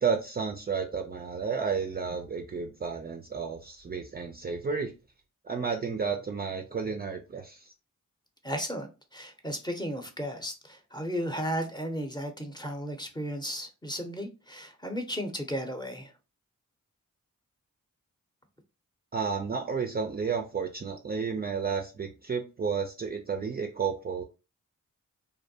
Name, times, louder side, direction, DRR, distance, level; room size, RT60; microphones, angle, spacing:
voice 1, 0.0-4.9 5.4-7.7 19.1-24.2, right 5 dB, 30° right, 0.4 m, -32 dB
voice 2, 8.4-16.1, equal, 15° left, 0.7 m, -34 dB
2.6 x 2.1 x 2.6 m
cardioid pair, 45°, 33 cm